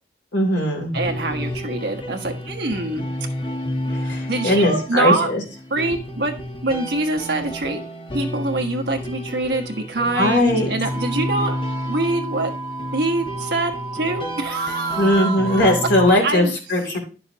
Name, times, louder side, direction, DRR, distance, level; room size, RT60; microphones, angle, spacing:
voice 1, 0.3-0.9 4.0-5.4 10.2-10.7 15.0-17.0, left 1 dB, 85° left, 1 dB, 3.3 m, -19 dB
sound 1, 0.9-16.1, left 1 dB, 25° left, 1.0 m, -30 dB
voice 2, 0.9-3.1 4.3-5.3 5.7-7.8 8.1-11.6 11.9-12.5 12.9-15.7 16.2-16.6, right 2 dB, 65° right, 4 dB, 1.3 m, -24 dB
sound 2, 10.8-16.2, right 4 dB, ahead, 3.3 m, -34 dB
11.0 x 6.8 x 2.9 m, 0.36 s
head